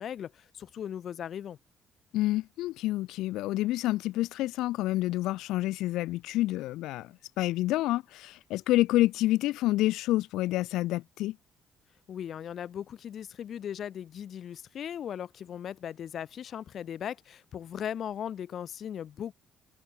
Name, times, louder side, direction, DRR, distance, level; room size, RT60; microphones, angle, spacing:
voice 1, 0.0-1.6 12.1-19.3, left 9 dB, 60° left, 0.7 m, -38 dB
voice 2, 2.1-7.1 7.4-11.4, left 16 dB, 90° left, 0.7 m, -28 dB
cardioid pair, 100°, 0 cm